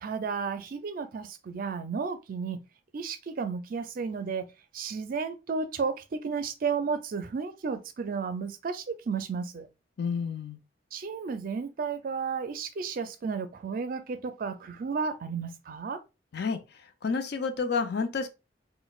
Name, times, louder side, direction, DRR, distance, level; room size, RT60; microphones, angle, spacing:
voice 1, 0.0-2.6 2.9-4.4 4.7-9.7 10.9-16.0, right 5 dB, 50° right, 0.4 m, -33 dB
voice 2, 10.0-10.6 16.3-16.6 17.0-18.3, left 5 dB, 60° left, 0.5 m, -29 dB
4.0 x 2.2 x 2.3 m
head